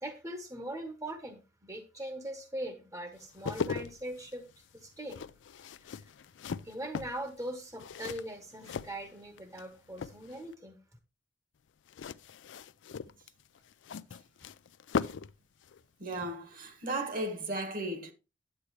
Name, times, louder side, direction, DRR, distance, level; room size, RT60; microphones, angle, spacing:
voice 1, 0.0-4.5 4.7-5.2 5.6-6.1 6.6-10.8, right 1 dB, 15° right, 1.0 m, -41 dB
sound 1, 3.2-9.6 9.9-10.5 11.9-15.4 15.6-15.8, left 6 dB, 85° left, 0.4 m, -39 dB
voice 2, 16.0-18.1, right 2 dB, 50° right, 1.6 m, -35 dB
10.0 x 7.9 x 3.1 m
head